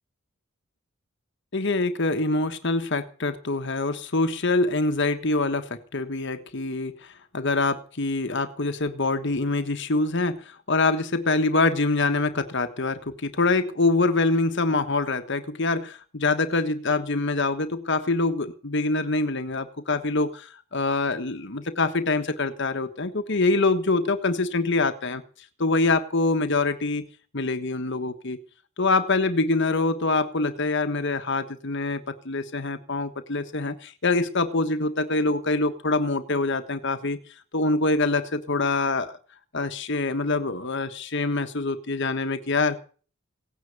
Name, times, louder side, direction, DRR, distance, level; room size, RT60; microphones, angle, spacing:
voice 1, 1.5-25.2 25.6-27.0 27.3-28.4 28.8-37.2 37.5-39.2 39.5-42.8, left 3 dB, 55° left, 9 dB, 1.3 m, -25 dB
17.5 x 9.7 x 6.9 m, 0.40 s
head